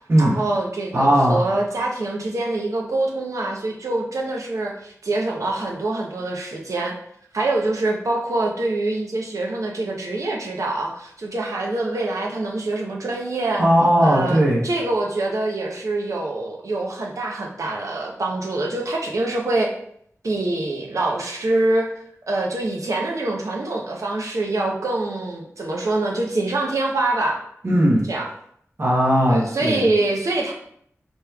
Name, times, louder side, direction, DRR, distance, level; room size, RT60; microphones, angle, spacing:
voice 1, 0.2-7.0 7.3-13.6 14.0-19.7 20.2-21.9 22.3-27.4 28.1-28.3 29.3-30.5, right 2 dB, 85° right, -1 dB, 0.8 m, -25 dB
voice 2, 0.9-1.4 13.6-14.7 27.6-28.1 28.8-29.8, equal, 50° right, -5 dB, 1.0 m, -17 dB
5.1 x 3.1 x 2.3 m, 0.68 s
wide cardioid pair, 85°, 5 cm